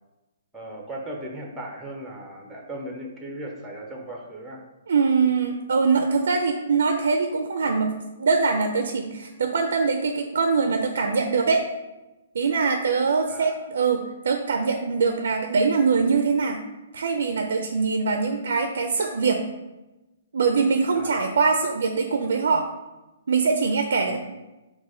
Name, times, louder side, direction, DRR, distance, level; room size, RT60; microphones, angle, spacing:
voice 1, 0.5-4.6 13.3-13.6 18.1-18.2 21.0-21.3 24.1-24.2, right 1 dB, 5° right, 0 dB, 0.4 m, -37 dB
voice 2, 4.9-11.6 12.3-16.6 16.9-19.4 20.3-22.7 23.3-24.2, right 4 dB, 75° right, 5 dB, 0.4 m, -23 dB
4.6 x 2.1 x 4.2 m, 1.0 s
hypercardioid pair, 165°, 0 cm